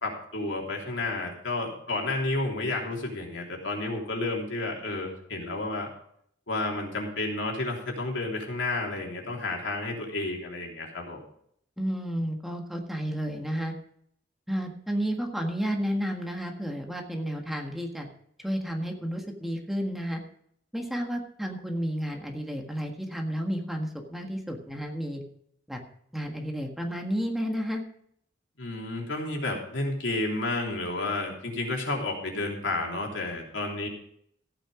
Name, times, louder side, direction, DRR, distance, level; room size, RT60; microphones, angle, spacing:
voice 1, 0.0-5.9 6.5-11.2 28.6-33.9, left 2 dB, 75° left, 0 dB, 3.3 m, -31 dB
voice 2, 11.8-13.7 14.5-18.1 18.4-20.2 20.7-25.2 25.7-25.8 26.1-27.8, equal, ahead, 2 dB, 1.7 m, -31 dB
14.5 x 9.0 x 5.0 m, 0.68 s
head